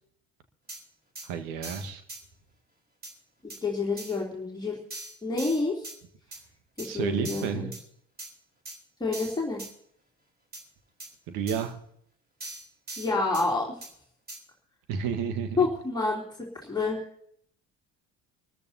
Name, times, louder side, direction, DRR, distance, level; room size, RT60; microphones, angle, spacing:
sound 1, 0.7-0.8 1.1-1.3 1.6-2.2 3.0-3.1 3.5-3.6 4.0-4.2 4.9-6.0 6.3-6.4 6.8-6.9 7.2-7.8 8.2-8.3 8.6-8.8 9.1-9.7 10.5-10.6 11.0-11.1 11.5-11.7 12.4-13.5 13.8-13.9 14.3-14.4, right 2 dB, 25° right, 3.8 m, -41 dB
voice 1, 1.2-2.0 6.8-7.7 11.3-11.8 14.9-15.7, right 7 dB, 55° right, 7 dB, 1.6 m, -31 dB
voice 2, 3.4-4.8 5.2-5.9 6.8-7.7 9.0-9.6 13.0-13.7 15.6-16.2 16.6-17.0, left 3 dB, 10° left, -4 dB, 3.2 m, -28 dB
25.5 x 14.0 x 2.8 m, 0.65 s
figure-of-eight pair, 60°, 40 cm